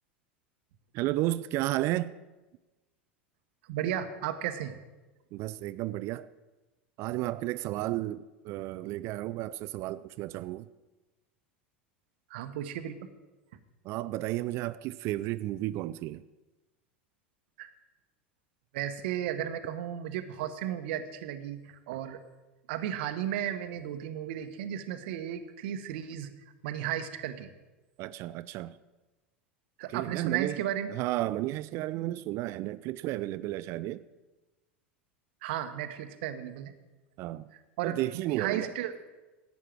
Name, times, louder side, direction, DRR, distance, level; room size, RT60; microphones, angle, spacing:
voice 1, 0.9-2.1 5.3-6.3 7.0-10.7 13.8-16.2 28.0-28.8 29.9-30.6 30.9-34.0 37.2-37.5 37.8-38.7, right 16 dB, 50° right, 0.4 m, -33 dB
voice 2, 3.7-4.7 12.3-13.0 17.6-17.7 18.7-22.2 22.7-26.3 26.6-27.5 29.8-30.9 35.4-36.7 37.8-38.9, right 10 dB, 65° right, 1.0 m, -34 dB
11.5 x 8.3 x 7.5 m
hypercardioid pair, 85°, 6 cm